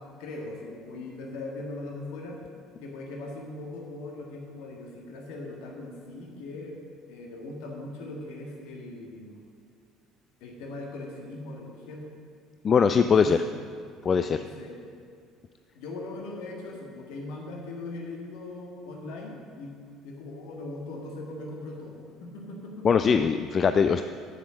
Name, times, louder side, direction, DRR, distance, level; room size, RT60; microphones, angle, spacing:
voice 1, 0.0-2.4 2.8-6.8 7.1-9.4 10.4-12.1 13.2-13.6 14.4-14.8 15.7-22.9, left 2 dB, 60° left, 0 dB, 1.7 m, -40 dB
voice 2, 12.6-13.4 14.0-14.4 22.8-24.0, left 6 dB, 35° left, 9 dB, 0.3 m, -21 dB
8.5 x 7.4 x 6.4 m, 2.2 s
figure-of-eight pair, 55°, 0 cm